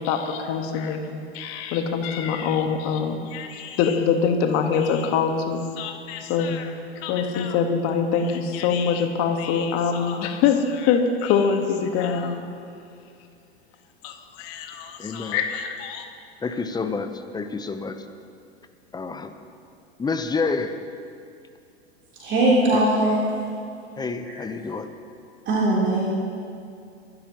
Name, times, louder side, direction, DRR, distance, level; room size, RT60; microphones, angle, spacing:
voice 1, 0.0-6.7 7.0-12.4 14.0-16.0, left 6 dB, 45° left, 5 dB, 1.5 m, -24 dB
voice 2, 15.0-15.4 16.4-18.0 18.9-19.3 20.0-20.8 22.7-22.8 24.0-24.9, left 4 dB, 10° left, 8 dB, 0.8 m, -28 dB
voice 3, 22.2-23.2 24.2-24.3 25.5-26.0, right 1 dB, 35° right, -8 dB, 3.6 m, -20 dB
25.0 x 12.5 x 3.0 m, 2.4 s
figure-of-eight pair, 90°, 33 cm